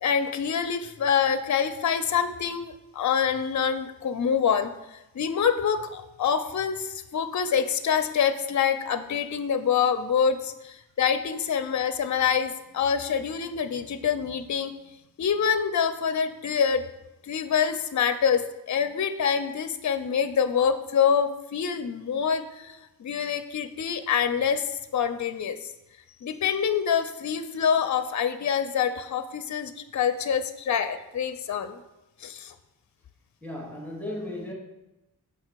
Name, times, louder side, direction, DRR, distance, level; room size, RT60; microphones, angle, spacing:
voice 1, 0.0-4.7 5.1-14.7 15.2-16.8 17.2-25.7 26.2-31.8 32.2-32.5, left 7 dB, 50° left, 10 dB, 0.5 m, -26 dB
voice 2, 33.4-34.5, left 1 dB, 5° left, -1 dB, 1.3 m, -35 dB
6.7 x 5.2 x 4.5 m, 0.97 s
wide cardioid pair, 95°, 37 cm